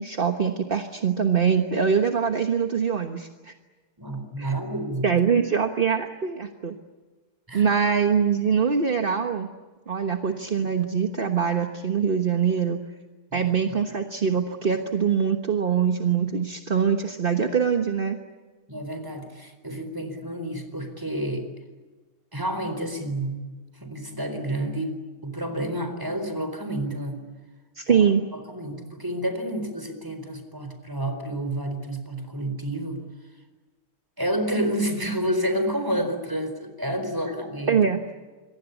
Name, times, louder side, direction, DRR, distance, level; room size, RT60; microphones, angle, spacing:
voice 1, 0.0-3.5 4.4-4.5 5.0-6.8 7.5-9.5 9.9-12.8 13.3-18.2 27.8-28.2 37.7-38.0, right 7 dB, 30° right, 5 dB, 1.1 m, -23 dB
voice 2, 4.0-5.1 7.5-7.6 13.3-13.8 18.7-21.5 22.3-23.5 23.8-25.0 25.2-27.2 27.9-28.0 28.5-33.0 34.2-37.8, right 1 dB, 10° right, 8 dB, 4.1 m, -29 dB
27.0 x 23.0 x 8.3 m, 1.3 s
omnidirectional pair, 2.3 m